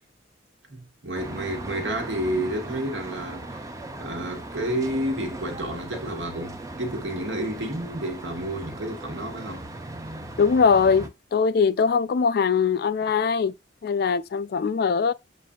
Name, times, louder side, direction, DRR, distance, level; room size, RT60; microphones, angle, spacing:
voice 1, 0.7-3.7 4.0-9.7, right 1 dB, 80° right, 1.4 m, -30 dB
sound 1, 1.1-11.1, right 2 dB, 15° right, 0.5 m, -38 dB
voice 2, 10.4-13.5 13.8-15.1, left 5 dB, 55° left, 0.3 m, -21 dB
7.3 x 2.5 x 2.3 m
head